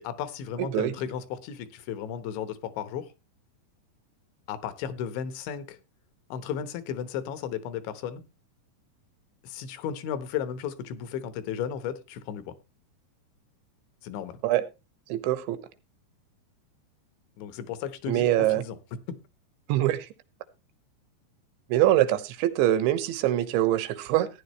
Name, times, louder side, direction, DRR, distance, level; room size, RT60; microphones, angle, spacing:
voice 1, 0.0-3.1 4.5-5.8 6.3-8.2 9.4-12.5 14.0-14.4 17.4-18.8, left 8 dB, 85° left, 12 dB, 3.5 m, -34 dB
voice 2, 0.6-0.9 14.4-14.6 15.1-15.6 18.1-18.6 19.7-20.1 21.7-24.3, right 13 dB, 85° right, 12 dB, 3.3 m, -24 dB
15.0 x 10.0 x 3.1 m, 0.27 s
omnidirectional pair, 5.2 m